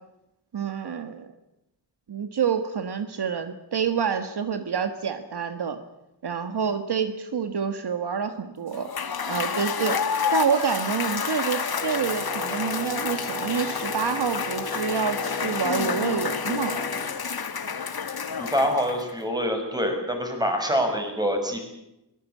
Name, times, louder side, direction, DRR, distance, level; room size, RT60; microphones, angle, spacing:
voice 1, 0.5-1.3 2.1-5.8 6.2-8.9 9.3-10.0 10.3-16.8, right 6 dB, 65° right, 9 dB, 1.7 m, -27 dB
Cheering / Applause / Crowd, 8.7-19.2, left 6 dB, 60° left, 2.0 m, -29 dB
Wind instrument woodwind instrument, 11.8-17.1, left 1 dB, 10° left, 5.9 m, -37 dB
voice 2, 18.4-21.6, equal, 10° right, 3 dB, 6.5 m, -25 dB
23.0 x 19.0 x 8.5 m, 0.88 s
wide cardioid pair, 105°, 42 cm